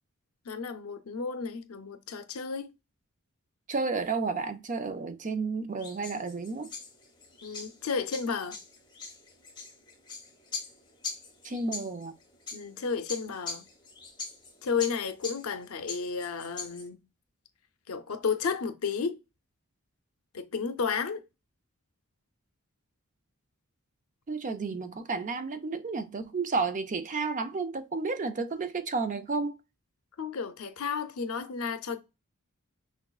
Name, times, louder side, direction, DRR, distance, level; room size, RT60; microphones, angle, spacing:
voice 1, 0.5-2.7 7.4-8.6 12.5-13.6 14.6-17.0 17.9-19.2 20.3-21.2 30.2-32.0, left 5 dB, 75° left, 0.6 m, -32 dB
voice 2, 3.7-6.7 11.4-12.1 24.3-29.6, right 4 dB, 35° right, 0.5 m, -32 dB
sound 1, 5.8-16.9, left 4 dB, 20° left, 1.3 m, -43 dB
6.0 x 2.3 x 2.4 m
head